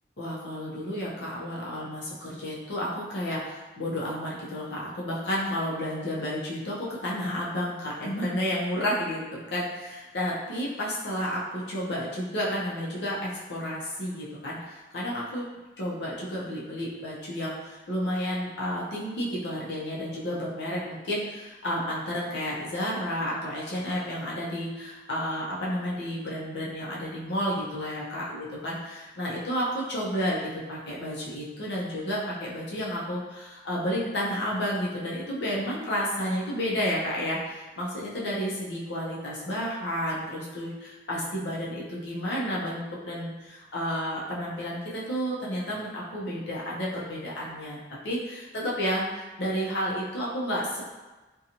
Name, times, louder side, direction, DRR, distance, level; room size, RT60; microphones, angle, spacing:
voice 1, 0.2-15.5 15.8-30.4 30.7-50.8, equal, 80° left, -6 dB, 0.6 m, -31 dB
2.5 x 2.3 x 2.8 m, 1.2 s
head